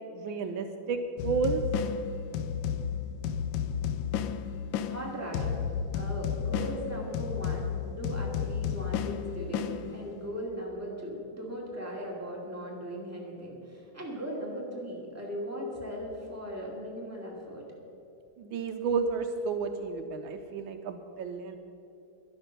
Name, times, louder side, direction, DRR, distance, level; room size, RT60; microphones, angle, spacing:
voice 1, 0.1-1.6 18.4-21.6, right 5 dB, 75° right, 7 dB, 1.4 m, -31 dB
sound 1, 1.2-10.3, left 8 dB, 75° left, 1.3 m, -32 dB
voice 2, 4.8-5.6 5.9-17.7, equal, 5° right, -3 dB, 2.5 m, -38 dB
11.5 x 11.0 x 6.7 m, 2.8 s
omnidirectional pair, 2.2 m